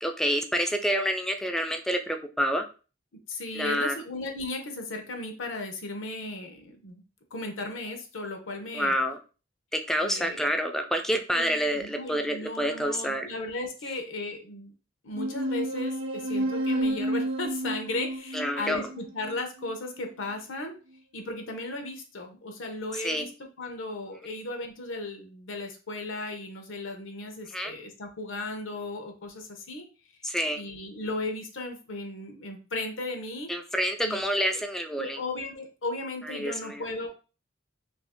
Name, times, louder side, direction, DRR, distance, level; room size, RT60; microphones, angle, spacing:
voice 1, 0.0-2.7 3.5-4.0 8.7-9.2 9.7-13.3 18.3-18.9 23.0-23.3 27.5-27.7 30.2-30.6 33.5-35.2 36.3-36.8, equal, 5° left, 6 dB, 0.3 m, -28 dB
voice 2, 3.1-7.0 7.3-9.0 10.0-10.4 11.3-14.7 15.0-20.8 21.1-23.3 23.6-29.9 30.5-33.5 34.0-34.2 34.5-34.6 35.0-37.1, left 2 dB, 80° left, 4 dB, 0.7 m, -36 dB
sound 1, 15.1-20.1, right 1 dB, 85° right, 0.5 m, -31 dB
2.8 x 2.6 x 3.5 m, 0.35 s
head